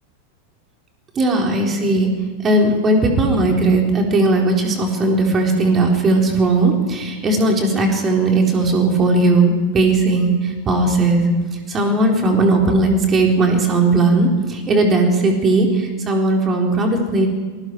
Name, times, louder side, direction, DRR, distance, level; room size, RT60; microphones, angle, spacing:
voice 1, 1.2-2.1 2.4-11.3 11.7-17.3, right 2 dB, 25° right, 1 dB, 4.1 m, -17 dB
27.5 x 19.5 x 4.7 m, 1.5 s
figure-of-eight pair, 90°, 0 cm